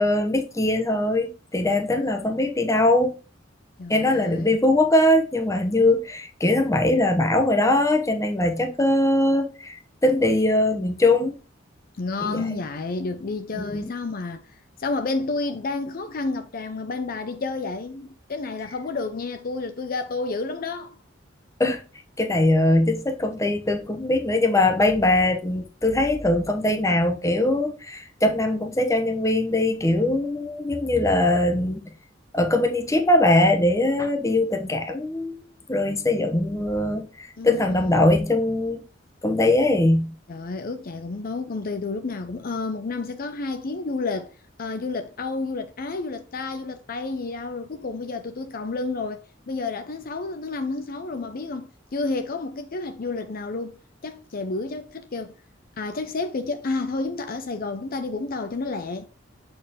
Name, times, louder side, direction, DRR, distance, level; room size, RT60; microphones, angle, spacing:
voice 1, 0.0-3.2 3.9-11.3 12.2-12.6 13.5-13.9 21.6-21.8 22.2-31.9 32.3-35.4 35.7-38.8 39.2-40.1, left 1 dB, 15° left, 0.9 m, -21 dB
voice 2, 3.8-4.6 12.0-21.0 37.4-38.1 40.3-44.3 44.6-49.2 49.5-53.8 54.0-55.3 55.8-59.1, left 3 dB, 50° left, 0.6 m, -30 dB
7.3 x 4.4 x 3.5 m
head